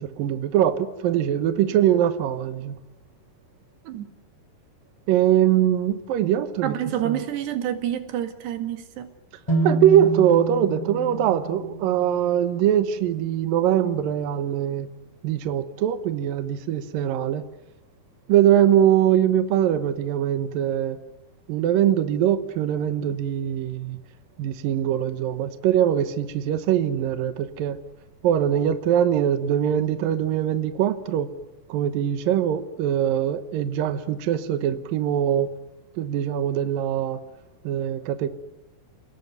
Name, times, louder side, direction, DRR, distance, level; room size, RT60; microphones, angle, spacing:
voice 1, 0.0-2.8 5.1-6.8 7.0-7.2 9.6-14.9 15.2-17.4 18.3-21.0 21.5-24.0 24.4-27.8 28.2-31.3 31.7-35.5 36.0-37.2 37.6-38.3, right 10 dB, 70° right, 2.7 m, -22 dB
voice 2, 6.6-9.1, right 11 dB, 90° right, 4.2 m, -28 dB
sound 1, 9.5-13.4, right 2 dB, 5° left, 2.8 m, -29 dB
29.5 x 19.5 x 9.5 m
omnidirectional pair, 4.7 m